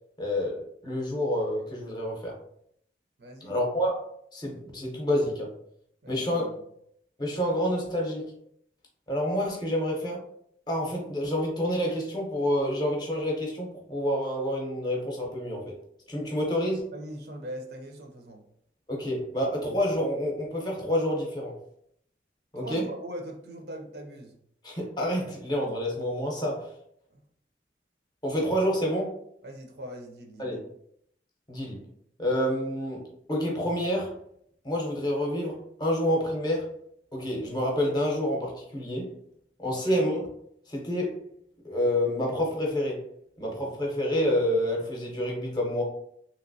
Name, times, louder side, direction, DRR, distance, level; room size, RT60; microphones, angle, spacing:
voice 1, 0.2-2.3 3.4-4.0 4.3-5.5 6.1-6.5 7.2-8.3 9.1-10.2 10.7-15.7 16.1-16.9 18.9-21.5 22.5-22.8 24.6-26.7 28.2-29.1 30.4-30.6 31.5-31.8 32.2-34.1 34.6-36.7 37.1-39.2 39.6-40.2 40.7-41.2 41.6-43.0 43.4-45.8, equal, 25° left, -1 dB, 0.7 m, -28 dB
voice 2, 3.2-3.5 6.0-6.6 16.9-18.4 22.6-24.3 27.1-27.2 29.4-30.6 39.7-40.1, right 1 dB, 60° right, 2 dB, 0.5 m, -41 dB
3.0 x 2.9 x 2.6 m, 0.70 s
head